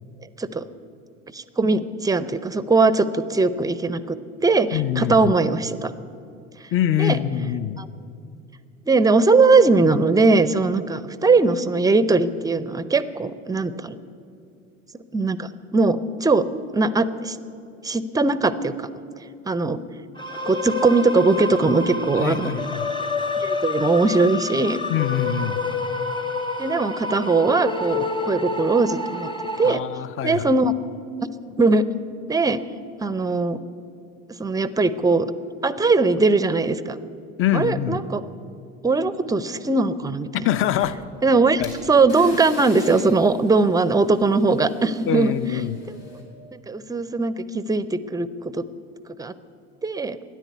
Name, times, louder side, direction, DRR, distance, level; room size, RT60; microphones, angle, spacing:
voice 1, 1.3-4.2 4.4-5.9 7.0-7.2 7.8-7.9 8.9-14.0 15.1-16.5 16.7-17.4 17.8-18.9 19.5-19.8 20.4-22.5 23.4-24.8 26.6-29.3 29.6-29.8 30.2-30.7 31.5-31.9 32.3-32.6 33.0-33.6 34.4-35.3 35.6-37.0 37.5-38.2 38.8-40.5 41.2-41.6 41.9-45.3 45.9-46.0 46.5-48.3 48.5-48.6 49.2-49.3 49.8-50.2, right 3 dB, 10° right, 15 dB, 0.6 m, -20 dB
voice 2, 4.7-5.3 6.7-7.8 22.2-22.9 24.9-25.6 29.6-30.5 37.4-38.0 40.3-41.0 41.6-41.7 45.1-45.8, left 11 dB, 35° left, 15 dB, 0.7 m, -24 dB
sound 1, 20.2-29.7, left 3 dB, 15° left, 1.0 m, -28 dB
sound 2, 40.7-46.2, left 1 dB, 75° left, 3.3 m, -42 dB
13.0 x 10.0 x 8.1 m, 2.5 s
hypercardioid pair, 70°, 37 cm